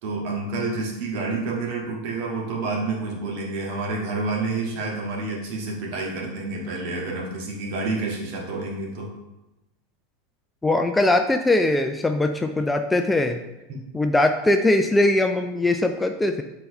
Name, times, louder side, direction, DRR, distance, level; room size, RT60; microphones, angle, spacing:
voice 1, 0.0-9.1 13.7-13.8, right 3 dB, 50° right, -1 dB, 1.7 m, -29 dB
voice 2, 10.6-13.4 13.9-16.4, left 2 dB, 10° left, 6 dB, 0.4 m, -21 dB
7.6 x 4.1 x 3.3 m, 0.97 s
figure-of-eight pair, 85°, 0 cm